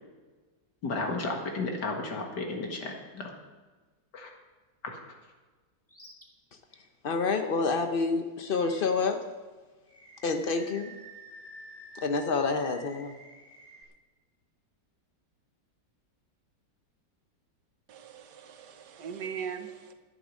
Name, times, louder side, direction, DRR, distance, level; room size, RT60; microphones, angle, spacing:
voice 1, 0.8-3.3 4.1-4.3 4.8-5.0, left 3 dB, 65° left, 2 dB, 2.4 m, -33 dB
Animal, 5.9-6.2 6.7-6.9 8.5-9.2 9.9-13.8, equal, 10° left, 1.4 m, -50 dB
voice 2, 7.0-9.2 10.2-10.9 12.0-13.1, left 4 dB, 90° left, 7 dB, 0.4 m, -28 dB
voice 3, 17.9-19.9, right 7 dB, 70° right, 7 dB, 1.5 m, -40 dB
11.5 x 9.7 x 6.4 m, 1.3 s
omnidirectional pair, 2.0 m